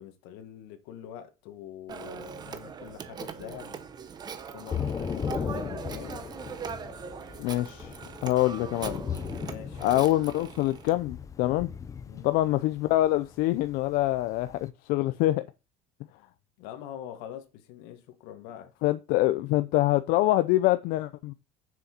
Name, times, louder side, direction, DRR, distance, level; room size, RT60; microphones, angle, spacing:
voice 1, 0.0-3.8 4.5-6.2 8.8-10.1 12.0-12.3 16.6-18.7, left 10 dB, 80° left, 1.7 m, -44 dB
Telephone, 1.9-11.0, right 6 dB, 25° right, 0.9 m, -41 dB
Thunder / Rain, 4.7-14.7, left 7 dB, 20° left, 0.6 m, -37 dB
voice 2, 7.4-9.0 9.8-11.7 12.2-15.4 18.8-21.3, left 16 dB, 65° left, 0.6 m, -25 dB
7.1 x 6.3 x 4.4 m
cardioid pair, 155°, 16 cm